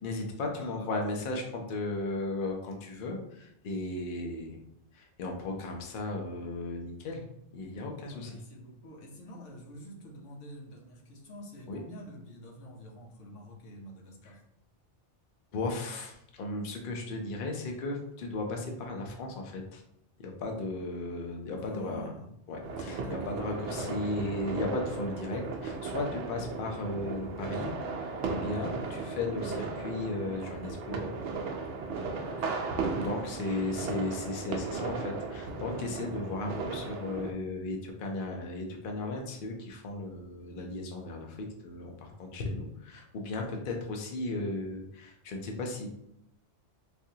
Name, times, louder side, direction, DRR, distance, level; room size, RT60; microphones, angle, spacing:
voice 1, 0.0-4.6 4.9-7.2 7.5-8.3 11.7-11.8 15.5-19.8 20.2-22.1 22.5-23.0 23.3-31.1 33.0-45.9, left 2 dB, 55° left, 2 dB, 0.7 m, -35 dB
voice 2, 0.5-1.3 8.1-14.4 21.6-22.3 22.9-23.5 28.8-29.0 32.2-32.8, equal, 90° left, 0 dB, 1.1 m, -47 dB
sound 1, 22.6-37.3, right 4 dB, 75° right, 0.9 m, -36 dB
3.5 x 2.6 x 2.7 m, 0.77 s
omnidirectional pair, 1.2 m